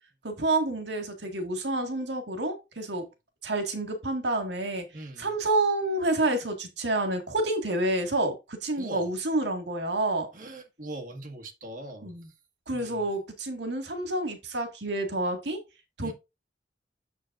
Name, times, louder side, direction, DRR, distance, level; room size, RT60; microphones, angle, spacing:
voice 1, 0.2-3.1 3.4-4.9 5.2-10.3 12.0-12.3 12.7-15.6 16.0-16.1, right 2 dB, 80° right, 1.8 m, -28 dB
voice 2, 4.9-5.3 8.8-9.1 10.3-12.1 12.7-13.1 16.0-16.1, right 1 dB, 50° right, 1.8 m, -41 dB
8.2 x 7.2 x 2.5 m
head